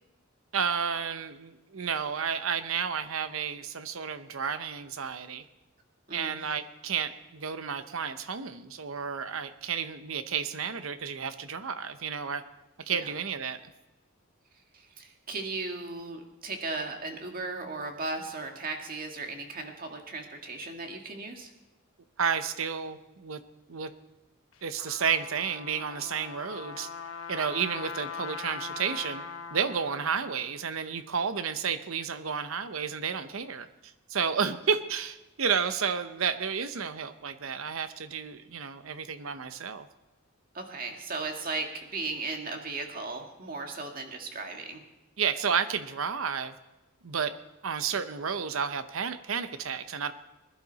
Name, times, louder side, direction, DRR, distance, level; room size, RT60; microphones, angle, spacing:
voice 1, 0.5-5.4 6.1-12.4 12.8-13.7 22.2-23.4 23.7-23.9 24.6-26.9 27.3-29.2 29.5-33.7 34.1-39.9 45.2-46.5 47.0-47.3 47.6-50.1, right 6 dB, 70° right, 11 dB, 0.8 m, -31 dB
voice 2, 14.7-21.5 40.5-44.8, right 3 dB, 45° right, 3 dB, 1.8 m, -36 dB
Trumpet, 24.5-30.5, left 5 dB, 75° left, 1.2 m, -41 dB
20.5 x 11.5 x 4.1 m, 1.0 s
head